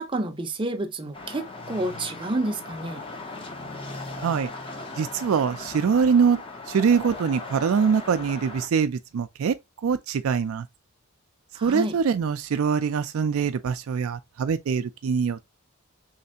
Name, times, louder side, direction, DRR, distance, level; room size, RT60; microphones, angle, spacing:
voice 1, 0.0-3.0 11.6-12.0, right 2 dB, 25° right, 0.5 m, -29 dB
sound 1, 1.1-8.7, left 2 dB, 25° left, 0.7 m, -38 dB
voice 2, 5.0-6.4 6.7-9.6 9.8-10.7 11.6-15.4, right 6 dB, 75° right, 0.4 m, -23 dB
3.3 x 3.1 x 2.7 m
head